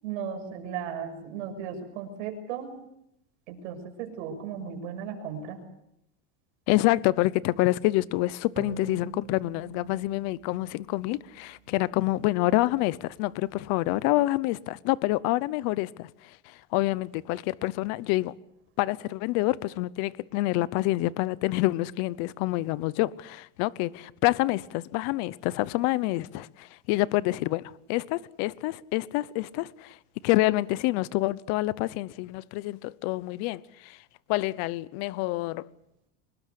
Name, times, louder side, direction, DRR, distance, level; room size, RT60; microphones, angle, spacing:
voice 1, 0.0-2.8 3.5-5.6, right 7 dB, 80° right, 6.7 m, -36 dB
voice 2, 6.7-18.4 18.8-35.7, left 18 dB, 50° left, 0.8 m, -27 dB
sound 1, 8.6-12.0, right 9 dB, 30° right, 5.2 m, -45 dB
24.5 x 20.5 x 8.3 m
cardioid pair, 165°, 35 cm